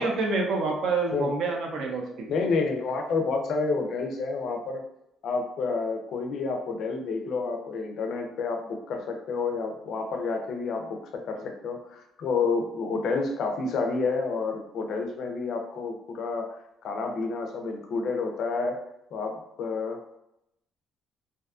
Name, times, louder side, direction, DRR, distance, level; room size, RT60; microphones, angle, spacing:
voice 1, 0.0-2.3, right 3 dB, 55° right, 1 dB, 0.5 m, -27 dB
voice 2, 2.3-4.8 5.2-16.5 16.8-18.8 19.1-20.2, left 4 dB, 50° left, 3 dB, 0.4 m, -29 dB
2.5 x 2.3 x 2.4 m, 0.81 s
cardioid pair, 160°, 0 cm